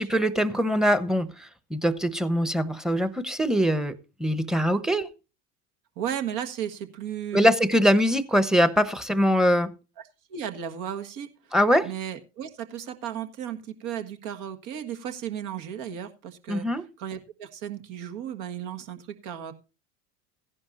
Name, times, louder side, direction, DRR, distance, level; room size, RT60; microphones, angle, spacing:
voice 1, 0.0-5.1 7.3-9.7 11.5-11.9 16.5-16.8, equal, ahead, 1.0 m, -23 dB
voice 2, 6.0-7.5 10.3-11.5 11.8-19.5, right 9 dB, 60° right, 1.7 m, -35 dB
15.5 x 11.0 x 2.6 m
hypercardioid pair, 80°, 36 cm